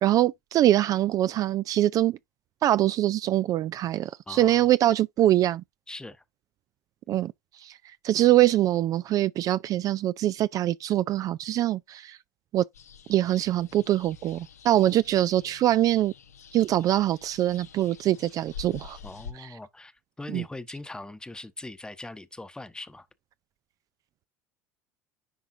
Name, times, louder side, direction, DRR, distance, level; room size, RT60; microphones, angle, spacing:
voice 1, 0.0-2.2 2.6-5.6 7.1-7.3 7.6-7.8 8.0-12.2 12.5-12.6 13.1-16.1 16.5-19.0 19.4-19.5 20.3-20.4, right 13 dB, 45° right, 0.3 m, -23 dB
voice 2, 4.3-4.6 5.9-6.2 19.0-23.1, left 2 dB, 10° left, 0.9 m, -41 dB
sound 1, 12.7-19.3, left 6 dB, 90° left, 0.9 m, -47 dB
10.0 x 3.8 x 2.6 m
hypercardioid pair, 75°, 8 cm